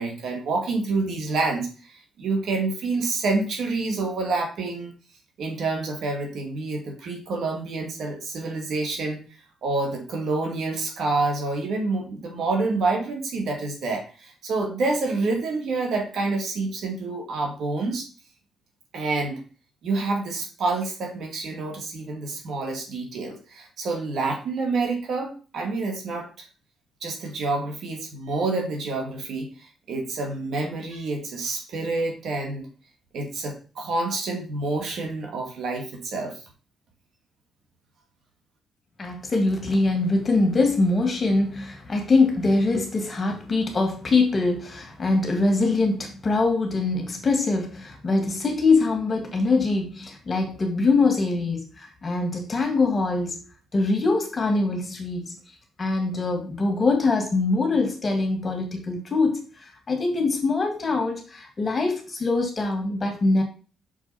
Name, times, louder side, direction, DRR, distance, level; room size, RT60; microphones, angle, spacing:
voice 1, 0.0-4.9 5.4-9.2 9.6-18.1 18.9-19.4 19.8-26.4 27.0-32.7 33.1-36.4, right 3 dB, 65° right, 2.4 m, -28 dB
voice 2, 39.0-53.4 53.7-55.4 55.8-63.4, left 3 dB, 30° left, 2.2 m, -23 dB
6.4 x 4.8 x 4.4 m
cardioid pair, 90°, 0 cm